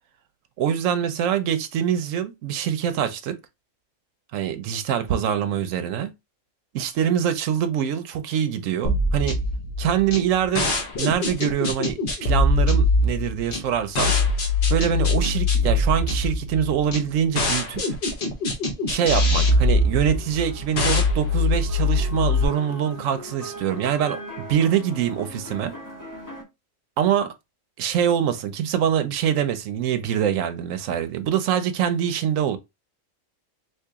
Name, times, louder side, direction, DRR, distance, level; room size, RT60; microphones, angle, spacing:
voice 1, 0.6-3.4 4.3-6.1 6.7-9.4 9.8-14.1 14.7-17.8 18.9-25.7 27.0-27.3 27.8-32.6, right 9 dB, 75° right, 1.0 m, -24 dB
sound 1, 8.8-22.4, left 2 dB, 45° left, 0.9 m, -22 dB
sound 2, 18.9-26.4, right 1 dB, 15° left, 1.2 m, -40 dB
2.9 x 2.8 x 3.5 m
omnidirectional pair, 1.4 m